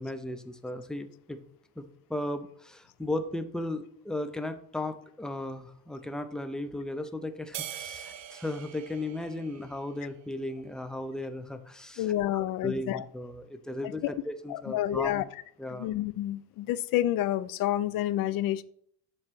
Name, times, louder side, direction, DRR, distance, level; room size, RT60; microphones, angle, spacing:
voice 1, 0.0-1.4 1.8-15.3 15.6-15.9, left 1 dB, ahead, 9 dB, 0.4 m, -36 dB
sound 1, 7.5-10.2, right 11 dB, 55° right, 0.7 m, -42 dB
voice 2, 12.0-13.0 13.8-14.1 14.5-15.2 15.7-18.6, left 13 dB, 55° left, 17 dB, 0.5 m, -29 dB
7.6 x 3.1 x 6.0 m, 0.64 s
cardioid pair, 115°, 42 cm